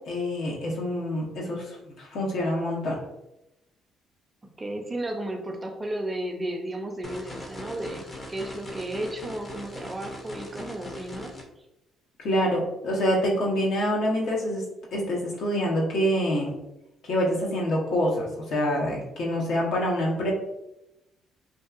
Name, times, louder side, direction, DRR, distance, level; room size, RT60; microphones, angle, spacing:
voice 1, 0.1-3.0 12.2-14.6 14.9-16.5 17.0-20.3, equal, 70° left, -2 dB, 0.7 m, -26 dB
voice 2, 4.6-11.4, right 1 dB, 25° right, 3 dB, 0.5 m, -33 dB
sound 1, 7.0-11.4, left 1 dB, 35° left, 0.6 m, -40 dB
2.6 x 2.4 x 2.4 m, 0.90 s
supercardioid pair, 60°, 0 cm